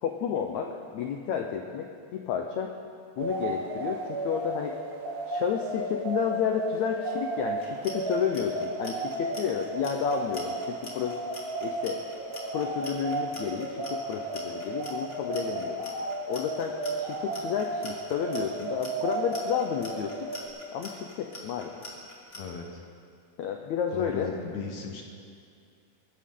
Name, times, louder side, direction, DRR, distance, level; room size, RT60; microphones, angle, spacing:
voice 1, 0.0-2.7 3.2-4.7 5.3-11.2 11.6-12.0 12.5-15.8 16.3-20.3 20.7-21.7 23.4-24.3, left 8 dB, 90° left, 3 dB, 1.6 m, -31 dB
sound 1, 3.2-20.5, right 3 dB, 85° right, 4.6 m, -34 dB
Clock, 7.6-22.4, left 2 dB, 30° left, 2.2 m, -44 dB
voice 2, 22.3-22.9 23.9-25.0, left 4 dB, 65° left, 2 dB, 2.0 m, -36 dB
22.0 x 15.0 x 3.8 m, 2.3 s
omnidirectional pair, 4.3 m